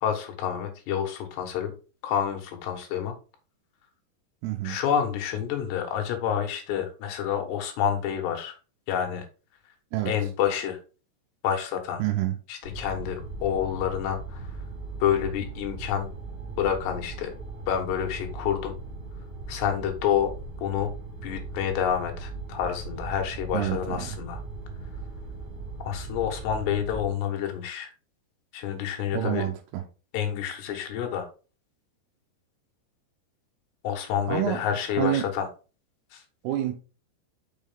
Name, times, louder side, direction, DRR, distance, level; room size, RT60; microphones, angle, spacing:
voice 1, 0.0-1.7 2.0-3.1 4.6-8.6 8.9-9.3 10.1-10.8 11.4-12.0 12.5-14.5 15.0-16.1 16.6-17.3 17.7-18.8 19.5-20.3 20.6-20.9 21.2-24.4 25.9-27.9 28.5-29.4 30.1-31.3 33.8-35.5 36.1-36.2, left 9 dB, 75° left, 3.3 m, -28 dB
voice 2, 4.4-4.8 9.9-10.1 12.0-12.4 23.5-24.2 29.1-29.8 34.3-34.6 35.0-35.3 36.4-36.8, right 13 dB, 85° right, 2.6 m, -28 dB
sound 1, 12.6-27.1, right 3 dB, 30° right, 1.5 m, -38 dB
6.3 x 5.5 x 3.6 m
omnidirectional pair, 5.1 m